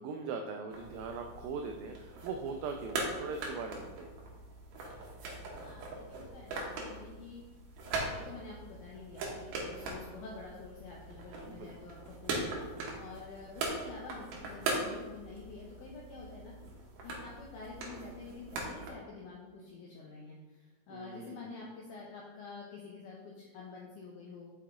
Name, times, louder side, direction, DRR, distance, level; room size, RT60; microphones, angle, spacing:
voice 1, 0.0-4.1 11.4-11.7 20.9-21.5, right 5 dB, 85° right, 4 dB, 2.0 m, -40 dB
sound 1, 0.7-18.9, right 2 dB, 70° right, 2.2 m, -41 dB
voice 2, 5.5-7.4 7.9-12.5 13.0-16.5 17.0-24.5, left 4 dB, 90° left, -3 dB, 1.7 m, -48 dB
5.7 x 5.6 x 3.7 m, 1.3 s
omnidirectional pair, 4.6 m